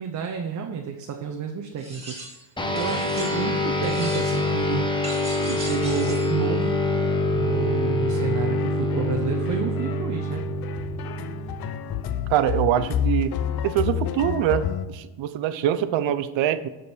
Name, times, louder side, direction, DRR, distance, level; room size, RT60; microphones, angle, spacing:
voice 1, 0.0-4.9 5.4-6.8 7.3-10.4, right 7 dB, 35° right, 3 dB, 0.8 m, -30 dB
sound 1, 1.8-2.5 2.8-3.6 3.8-4.5 5.0-6.4, right 1 dB, 10° right, 2.2 m, -38 dB
sound 2, 2.6-12.3, left 1 dB, 10° left, 1.1 m, -25 dB
sound 3, 8.1-14.9, left 9 dB, 50° left, 0.7 m, -30 dB
voice 2, 12.3-13.4 13.6-16.7, right 11 dB, 65° right, 12 dB, 0.8 m, -24 dB
12.0 x 5.2 x 4.5 m, 1.1 s
cardioid pair, 135°, 49 cm